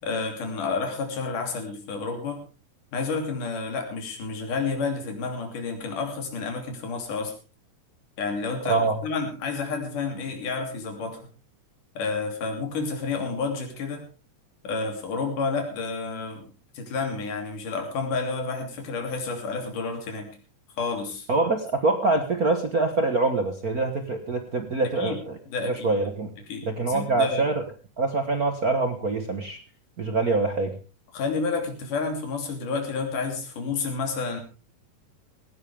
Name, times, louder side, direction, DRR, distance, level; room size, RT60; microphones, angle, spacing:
voice 1, 0.0-2.4 2.9-7.4 8.2-11.3 12.0-14.1 14.6-20.3 20.8-21.3 24.8-25.2 25.5-25.9 26.5-27.5 31.1-34.4, left 4 dB, 90° left, 4 dB, 4.5 m, -30 dB
voice 2, 8.6-9.0 21.3-25.3 25.6-26.3 26.6-27.6 28.0-29.6 30.0-30.8, right 3 dB, 50° right, 6 dB, 1.1 m, -24 dB
17.5 x 16.5 x 3.5 m, 0.33 s
omnidirectional pair, 3.5 m